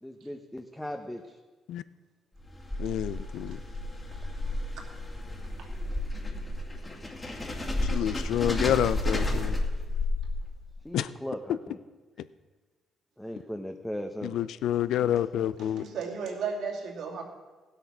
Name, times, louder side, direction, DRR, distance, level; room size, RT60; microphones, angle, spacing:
voice 1, 0.0-1.3 10.8-11.8 13.2-14.3, equal, 5° left, 4 dB, 0.9 m, -38 dB
sound 1, 2.4-10.7, left 1 dB, 20° left, 2.3 m, -32 dB
voice 2, 2.8-3.6 7.8-9.6 10.9-11.1 14.2-15.9, left 11 dB, 80° left, 16 dB, 0.5 m, -28 dB
voice 3, 15.6-17.2, right 5 dB, 75° right, 1 dB, 2.6 m, -34 dB
16.5 x 8.0 x 6.0 m, 1.3 s
cardioid pair, 90°, 0 cm